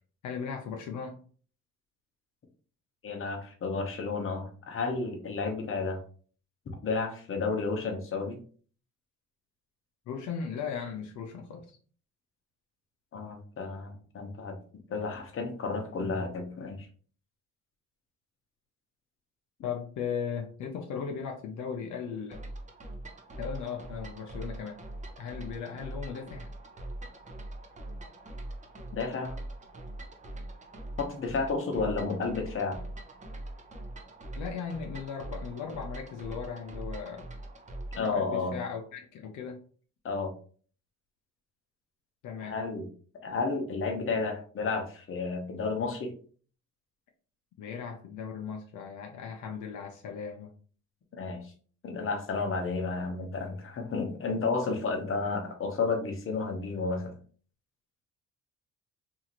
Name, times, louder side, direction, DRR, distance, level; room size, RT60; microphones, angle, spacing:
voice 1, 0.2-1.2 10.1-11.8 19.6-22.4 23.4-24.8 25.2-26.5 34.4-37.3 37.9-39.6 42.2-42.6 47.6-50.5, left 6 dB, 75° left, 2 dB, 0.6 m, -37 dB
voice 2, 3.0-6.0 6.8-8.4 13.1-14.5 14.9-16.9 28.9-29.4 31.0-32.8 38.0-38.6 40.0-40.3 42.4-42.9 43.2-46.1 51.1-51.5 51.8-57.2, left 4 dB, 45° left, 3 dB, 0.8 m, -32 dB
sound 1, 22.3-38.2, right 1 dB, 25° right, 0.6 m, -42 dB
2.8 x 2.5 x 2.8 m, 0.44 s
cardioid pair, 90°, 30 cm